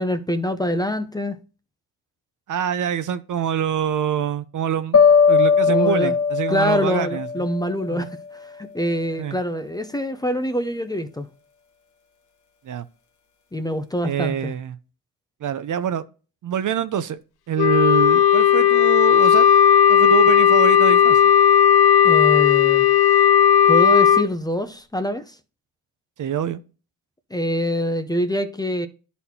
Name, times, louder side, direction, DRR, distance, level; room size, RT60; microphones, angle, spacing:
voice 1, 0.0-1.4 5.7-6.1 6.5-11.3 13.5-14.5 22.0-23.2 23.7-25.4 27.3-28.9, equal, 10° left, 0.6 m, -25 dB
voice 2, 2.5-5.0 5.3-7.4 7.9-8.0 9.2-9.4 12.6-12.8 14.0-14.8 15.4-16.0 16.4-17.2 17.5-19.5 19.9-21.2 26.2-26.6, right 9 dB, 50° right, 0.7 m, -25 dB
sound 1, 4.9-8.0, left 6 dB, 50° left, 1.4 m, -18 dB
Wind instrument woodwind instrument, 17.6-24.3, left 9 dB, 70° left, 0.7 m, -15 dB
11.0 x 4.2 x 2.8 m
cardioid pair, 90°, 40 cm